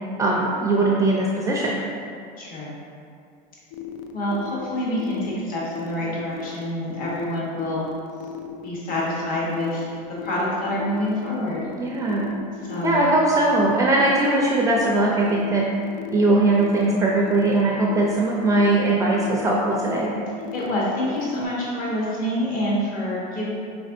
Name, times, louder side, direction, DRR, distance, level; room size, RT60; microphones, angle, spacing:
voice 1, 0.2-1.8 11.8-12.3 12.8-15.6 16.1-20.2, right 2 dB, 15° right, -3 dB, 0.4 m, -20 dB
voice 2, 2.4-2.7 4.1-7.9 8.6-9.9 10.2-11.6 12.7-13.1 20.5-23.5, left 1 dB, 45° left, -5 dB, 1.1 m, -27 dB
sound 1, 3.7-21.4, left 9 dB, 75° left, 0.4 m, -36 dB
5.2 x 3.4 x 2.6 m, 2.4 s
supercardioid pair, 120°, 21 cm